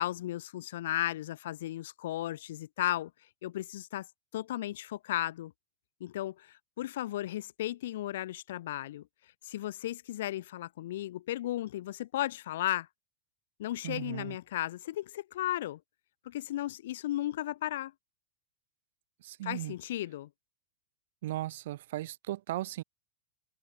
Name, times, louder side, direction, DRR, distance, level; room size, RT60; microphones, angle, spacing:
voice 1, 0.0-3.1 3.4-4.1 4.3-5.5 6.0-9.1 9.4-12.9 13.6-15.8 16.2-17.9 19.4-20.3, left 14 dB, 55° left, 0.6 m, -35 dB
voice 2, 13.8-14.4 19.2-19.7 21.2-22.8, right 15 dB, 55° right, 0.8 m, -37 dB
figure-of-eight pair, 90°, 0 cm